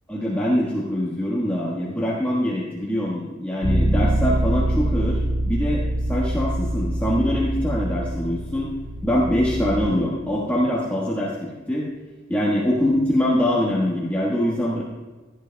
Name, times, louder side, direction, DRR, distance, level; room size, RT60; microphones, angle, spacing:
voice 1, 0.1-5.2 5.5-5.8 6.1-8.7 9.0-11.9 12.3-14.8, equal, 10° left, -6 dB, 1.4 m, -23 dB
Bass guitar, 3.6-9.9, right 1 dB, 75° right, 2.8 m, -24 dB
16.5 x 11.0 x 2.3 m, 1.3 s
head